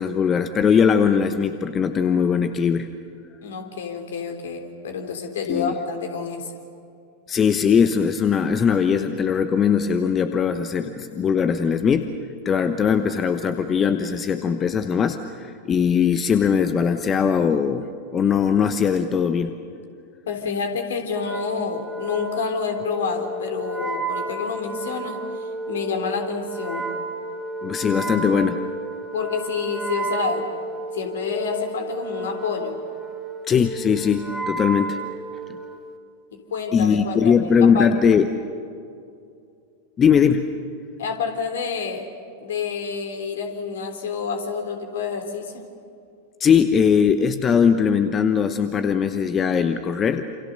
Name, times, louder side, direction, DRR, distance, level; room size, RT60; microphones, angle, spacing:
voice 1, 0.0-2.9 5.5-5.7 7.3-12.1 12.4-19.6 27.6-28.6 33.5-35.0 36.7-38.3 40.0-40.5 46.4-50.2, left 7 dB, 25° left, 9 dB, 1.1 m, -20 dB
voice 2, 3.4-6.5 20.3-26.9 28.0-28.1 29.1-30.5 30.9-32.8 36.5-37.9 41.0-42.1 42.4-45.7, left 5 dB, 60° left, 5 dB, 3.4 m, -28 dB
Wind instrument woodwind instrument, 21.1-35.9, right 2 dB, 5° right, 3.2 m, -32 dB
28.5 x 28.0 x 6.8 m, 2.5 s
figure-of-eight pair, 90°, 0 cm